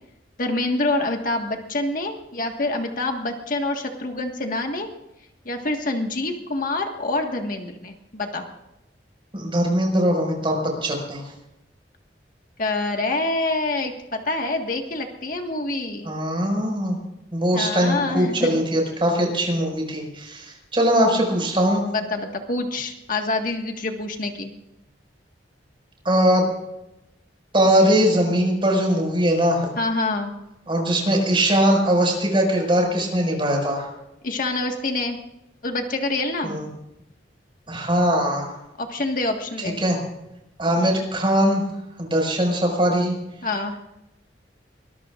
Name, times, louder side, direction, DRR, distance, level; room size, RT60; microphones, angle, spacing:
voice 1, 0.4-4.9 5.4-8.4 12.6-16.1 17.5-18.6 21.9-24.5 29.8-30.3 34.2-35.2 35.6-36.6 38.8-39.8 40.8-41.1 43.4-43.7, left 2 dB, 50° left, 3 dB, 1.7 m, -26 dB
voice 2, 9.3-11.2 16.0-17.0 17.3-21.8 26.0-26.4 27.5-29.7 30.7-33.9 36.4-36.7 37.7-38.5 39.8-40.0 40.6-41.6 42.0-43.1, equal, 30° right, 1 dB, 5.6 m, -21 dB
23.5 x 21.0 x 2.5 m, 0.89 s
head